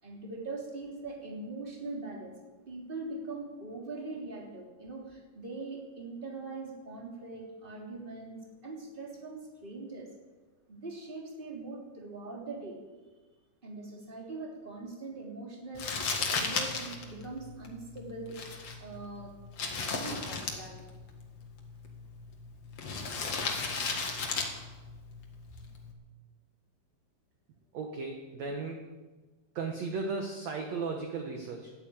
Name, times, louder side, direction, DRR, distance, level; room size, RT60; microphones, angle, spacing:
voice 1, 0.0-2.3 2.7-10.1 10.7-12.8 13.6-18.4 18.8-19.3 19.9-20.8, right 3 dB, 15° right, -1 dB, 2.8 m, -42 dB
Crumpling crinkling, 15.7-25.9, left 4 dB, 45° left, 2.3 m, -36 dB
voice 2, 27.7-28.9 29.5-31.7, right 4 dB, 55° right, 2 dB, 2.1 m, -36 dB
13.5 x 11.5 x 8.8 m, 1.3 s
omnidirectional pair, 4.7 m